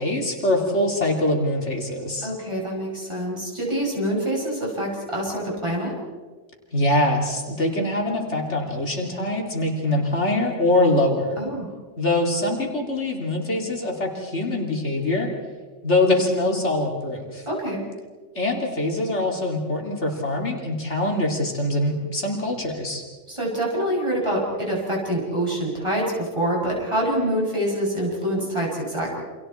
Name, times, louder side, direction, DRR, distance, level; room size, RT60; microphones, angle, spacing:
voice 1, 0.0-2.3 6.7-11.4 12.0-15.3 15.8-17.4 18.4-23.0, left 1 dB, 70° left, 1 dB, 3.5 m, -23 dB
voice 2, 2.2-5.9 11.4-11.7 17.5-17.8 23.3-29.2, right 1 dB, 25° right, -3 dB, 7.6 m, -26 dB
29.5 x 27.0 x 4.5 m, 1.4 s
omnidirectional pair, 1.2 m